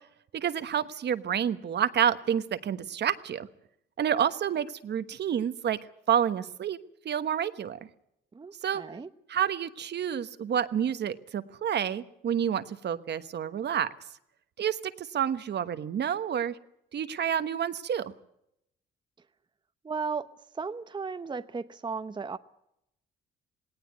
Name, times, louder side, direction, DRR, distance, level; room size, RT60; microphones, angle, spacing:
voice 1, 0.3-3.5 4.0-5.8 6.1-6.8 7.0-7.8 8.6-8.8 9.3-13.9 14.6-16.6 16.9-18.1, right 9 dB, 60° right, 12 dB, 1.2 m, -29 dB
voice 2, 8.3-9.1 19.8-20.3 20.5-22.4, right 5 dB, 25° right, 10 dB, 0.8 m, -35 dB
18.5 x 18.0 x 9.3 m, 0.79 s
cardioid pair, 90°, 20 cm